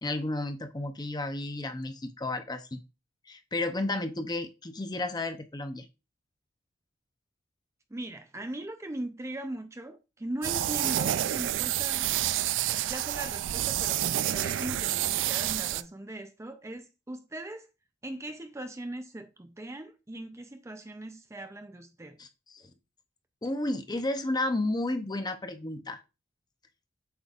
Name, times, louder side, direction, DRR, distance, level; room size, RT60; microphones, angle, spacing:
voice 1, 0.0-2.8 3.3-5.9 22.2-22.7 23.4-26.0, left 2 dB, 20° left, 0.6 m, -32 dB
voice 2, 7.9-12.1 12.7-17.7 18.0-22.2, right 1 dB, 15° right, 0.5 m, -40 dB
sound 1, 10.4-15.8, right 12 dB, 85° right, 0.3 m, -29 dB
7.9 x 5.1 x 2.4 m
head